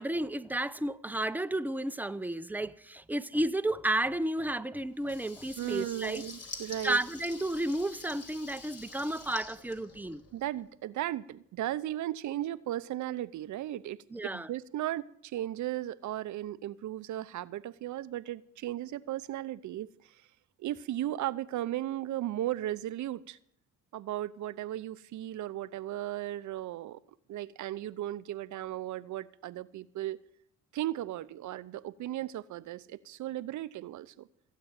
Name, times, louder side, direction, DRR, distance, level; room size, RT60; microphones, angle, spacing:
voice 1, 0.0-6.2 6.8-10.2 14.1-14.5, right 1 dB, 5° right, 0.7 m, -32 dB
Water tap faucet / Liquid, 5.0-10.5, left 3 dB, 55° left, 3.2 m, -47 dB
voice 2, 5.6-7.0 10.3-14.0 14.3-20.2 20.6-23.4 23.9-27.0 27.3-30.2 30.7-34.3, right 13 dB, 75° right, 0.8 m, -36 dB
16.0 x 8.5 x 9.2 m
cardioid pair, 90°, 30 cm